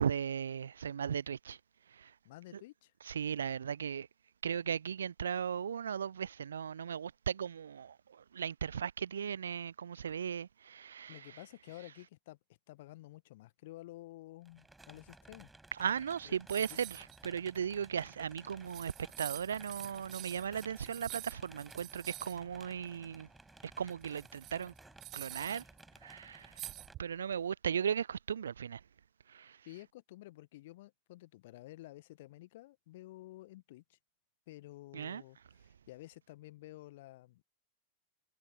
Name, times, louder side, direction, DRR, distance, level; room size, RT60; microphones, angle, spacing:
voice 1, 0.0-1.6 2.0-2.1 3.1-4.1 4.4-11.2 15.8-18.9 19.2-23.3 23.8-24.7 25.1-25.6 26.0-26.5 27.0-28.8 29.3-29.6 34.9-35.2, right 8 dB, 70° right, 0.3 m, -37 dB
voice 2, 2.2-2.9 4.6-4.7 11.1-12.4 12.7-15.5 16.2-16.4 16.7-16.8 29.6-34.0 34.5-37.4, left 17 dB, 55° left, 1.4 m, -52 dB
sound 1, 14.4-26.9, right 2 dB, 5° right, 5.2 m, -57 dB
sound 2, 16.5-17.2 17.6-17.7 18.4-18.5 18.7-22.4 23.9-25.8 26.6-27.3, right 15 dB, 35° right, 1.0 m, -47 dB
figure-of-eight pair, 90°, 0 cm